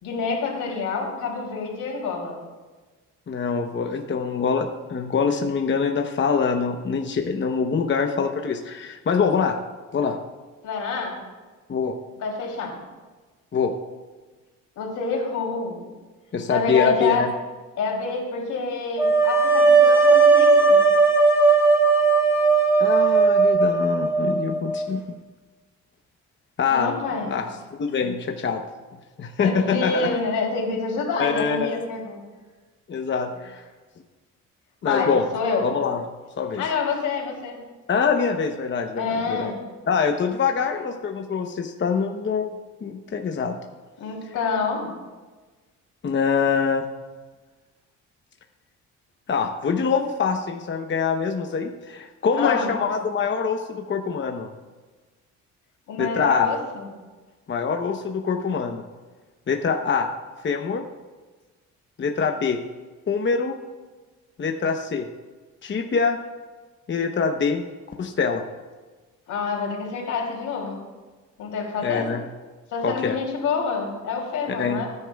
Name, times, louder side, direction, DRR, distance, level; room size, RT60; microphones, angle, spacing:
voice 1, 0.0-2.4 10.6-11.2 12.2-12.8 14.8-15.8 16.5-17.3 17.8-20.8 26.7-27.3 29.4-32.2 34.8-35.7 36.5-37.6 39.0-39.6 44.0-44.9 52.4-52.7 55.9-56.9 69.3-70.8 71.4-72.1 72.7-74.9, left 4 dB, 80° left, 0 dB, 3.1 m, -27 dB
voice 2, 3.3-9.6 9.9-10.2 11.7-12.0 13.5-13.7 16.3-17.3 22.8-25.2 26.6-27.0 27.3-27.5 27.8-28.6 29.2-30.1 31.2-31.8 32.9-33.6 34.8-35.2 35.6-36.0 36.4-36.6 37.9-39.5 39.9-42.5 42.8-43.6 46.0-46.9 49.3-54.5 56.0-56.5 57.5-58.8 59.5-60.1 60.4-60.8 62.0-62.6 63.1-63.5 64.4-65.1 65.6-66.2 66.9-67.6 68.0-68.4 71.8-72.2 72.8-73.2 74.5-74.8, left 5 dB, 40° left, 3 dB, 0.9 m, -24 dB
sound 1, 19.0-24.8, right 4 dB, 10° right, 3.8 m, -17 dB
19.5 x 9.7 x 2.3 m, 1.3 s
cardioid pair, 90°, 30 cm